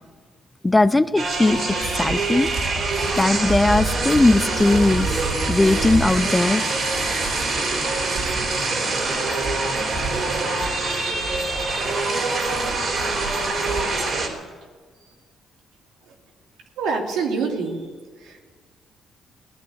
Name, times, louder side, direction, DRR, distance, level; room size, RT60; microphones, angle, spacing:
voice 1, 0.6-2.5 3.2-5.2 5.5-6.6, left 2 dB, 15° left, 15 dB, 0.6 m, -19 dB
sound 1, 1.2-14.3, right 3 dB, 55° right, 4.2 m, -24 dB
voice 2, 12.9-13.4 15.0-15.1 16.0-16.1 16.7-17.9 18.2-18.5, right 4 dB, 85° right, 1 dB, 2.9 m, -28 dB
18.0 x 9.9 x 8.0 m, 1.5 s
cardioid pair, 90°, 0 cm